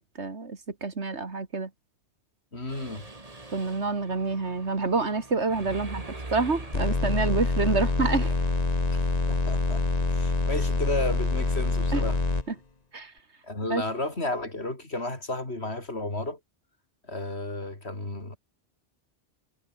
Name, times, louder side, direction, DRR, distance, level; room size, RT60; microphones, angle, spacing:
voice 1, 0.0-1.7 3.5-6.0 6.3-8.3 11.9-12.0 12.5-12.6 12.9-13.1 13.7-13.8, right 3 dB, 75° right, 2.8 m, -28 dB
voice 2, 2.5-3.1 8.9-9.8 10.1-12.2 13.4-16.4 17.1-18.4, left 2 dB, 65° left, 5.1 m, -33 dB
Mechanisms, 2.7-8.6, right 2 dB, 30° right, 2.5 m, -43 dB
sound 1, 6.7-12.4, left 3 dB, 35° left, 1.9 m, -26 dB
omnidirectional pair, 1.2 m